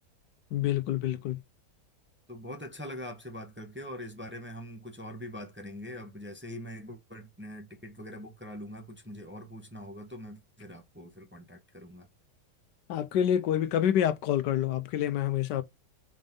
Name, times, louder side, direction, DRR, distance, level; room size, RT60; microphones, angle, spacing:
voice 1, 0.5-1.4 12.9-15.6, left 10 dB, 75° left, 1.3 m, -27 dB
voice 2, 2.3-12.1, equal, 5° right, 1.1 m, -43 dB
5.2 x 4.3 x 5.4 m
omnidirectional pair, 1.9 m